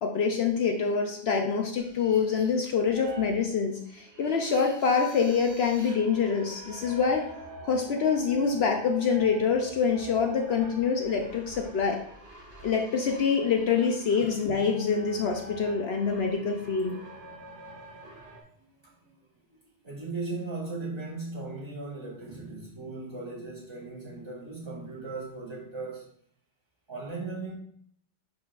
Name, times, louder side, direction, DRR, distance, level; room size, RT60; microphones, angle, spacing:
voice 1, 0.0-7.3 7.6-12.0 12.6-17.0, left 5 dB, 65° left, 0.9 m, -26 dB
sound 1, 1.8-18.4, right 2 dB, 85° right, 1.9 m, -47 dB
voice 2, 18.6-19.1 19.8-26.1 26.9-27.5, right 3 dB, 25° right, 2.7 m, -37 dB
10.5 x 4.1 x 2.4 m
omnidirectional pair, 1.2 m